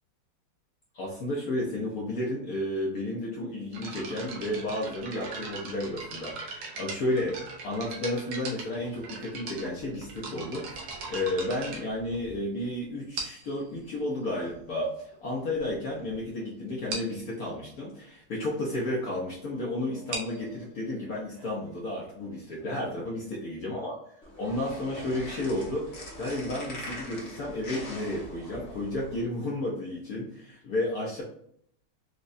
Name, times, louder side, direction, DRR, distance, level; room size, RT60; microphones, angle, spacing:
voice 1, 0.9-24.0 24.4-31.2, left 1 dB, 70° left, -4 dB, 0.8 m, -32 dB
sound 1, 3.7-12.6 13.2-13.6 14.4-14.5 15.1-15.2 15.5-15.7 16.0-16.1 16.4-16.5 16.9-17.2 19.9-23.4, right 3 dB, 85° right, 1.6 m, -40 dB
sound 2, 24.2-29.2, equal, 45° left, 1.1 m, -42 dB
4.5 x 2.1 x 2.5 m, 0.68 s
omnidirectional pair, 2.2 m